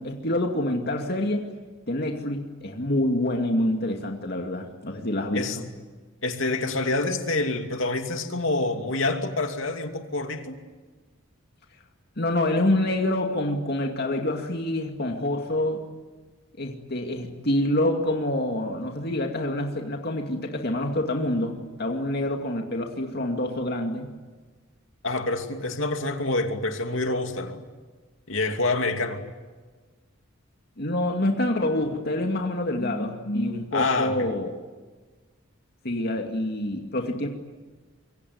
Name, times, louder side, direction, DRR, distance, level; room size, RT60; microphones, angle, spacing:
voice 1, 0.0-1.5 1.9-5.6 12.2-15.8 16.6-24.1 30.8-34.5 35.8-37.3, left 1 dB, 50° left, 2 dB, 2.4 m, -26 dB
voice 2, 6.2-10.6 25.0-27.6 28.3-29.2 33.7-34.3, left 2 dB, 70° left, 5 dB, 2.7 m, -27 dB
26.0 x 24.0 x 9.5 m, 1.3 s
head